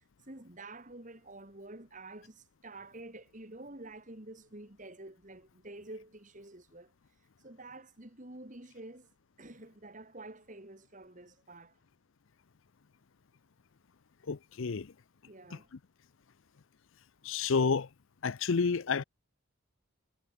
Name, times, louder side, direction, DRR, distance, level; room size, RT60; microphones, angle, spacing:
voice 1, 0.3-6.9 7.4-9.1 9.4-11.7 15.3-15.7, right 2 dB, 35° right, 2.3 m, -49 dB
voice 2, 14.2-14.9 15.5-15.6 17.2-17.9 18.2-19.0, left 5 dB, 65° left, 0.6 m, -30 dB
head